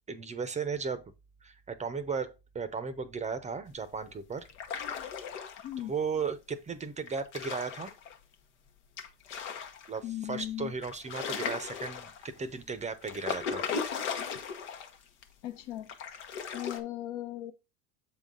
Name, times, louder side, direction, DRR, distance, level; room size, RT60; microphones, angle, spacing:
voice 1, 0.1-1.1 1.4-4.5 5.8-7.9 9.9-13.6, right 5 dB, 20° right, 0.6 m, -36 dB
sound 1, 4.4-5.8 7.1-8.1 9.0-10.0 10.4-10.5 10.8-12.4 13.0-15.0 15.2-15.3 15.9-16.8, left 6 dB, 85° left, 1.1 m, -37 dB
voice 2, 10.0-10.7 15.4-15.9 16.5-17.5, left 13 dB, 60° left, 0.9 m, -37 dB
7.0 x 3.8 x 3.8 m
supercardioid pair, 90°, 34 cm